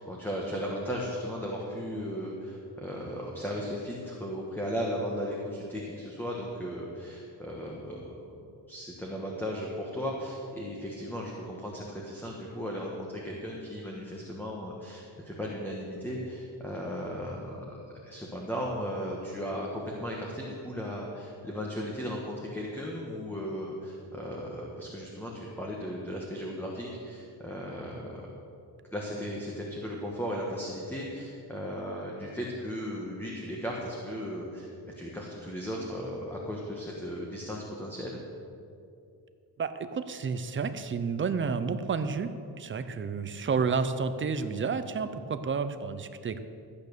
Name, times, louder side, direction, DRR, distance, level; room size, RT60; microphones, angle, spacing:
voice 1, 0.0-8.1 8.7-28.3 28.9-38.2, equal, 5° left, -3 dB, 1.2 m, -36 dB
voice 2, 39.6-42.3 42.6-46.4, right 5 dB, 30° right, 10 dB, 0.6 m, -30 dB
13.5 x 8.5 x 6.7 m, 2.6 s
cardioid pair, 170°, 42 cm